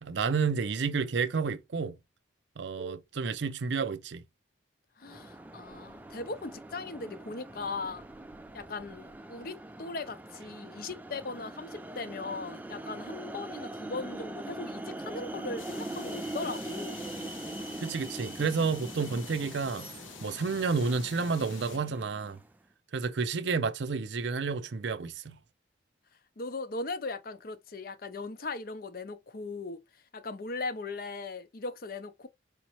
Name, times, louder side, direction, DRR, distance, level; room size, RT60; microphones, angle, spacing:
voice 1, 0.0-2.0 2.6-4.2 17.8-19.9 20.2-22.4 22.9-25.4, right 5 dB, 65° right, 0.5 m, -30 dB
voice 2, 5.0-8.0 8.5-17.0 26.4-29.8 30.1-32.3, left 3 dB, 50° left, 0.6 m, -38 dB
sound 1, 5.0-22.5, right 2 dB, 10° right, 0.3 m, -42 dB
sound 2, 15.6-21.8, left 6 dB, 85° left, 0.7 m, -48 dB
5.0 x 2.9 x 2.9 m
head